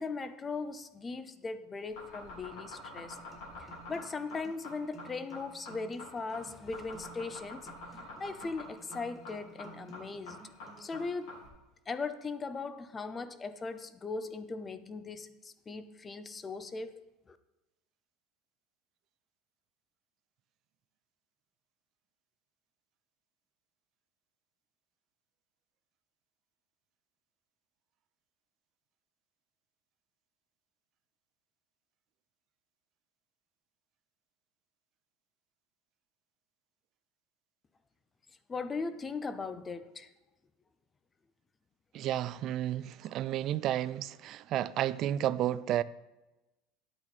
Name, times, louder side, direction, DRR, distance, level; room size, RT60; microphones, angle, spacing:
voice 1, 0.0-3.2 3.6-7.7 8.2-10.4 10.8-11.4 11.9-16.9 17.3-17.4 38.5-40.1, left 4 dB, 15° left, 0.5 m, -39 dB
sound 1, 1.8-11.5, left 3 dB, 80° left, 4.0 m, -46 dB
sound 2, 2.9-10.9, right 4 dB, 5° right, 1.9 m, -55 dB
voice 2, 41.9-45.8, right 12 dB, 40° right, 0.4 m, -32 dB
12.0 x 8.7 x 4.1 m
cardioid pair, 160°, 0 cm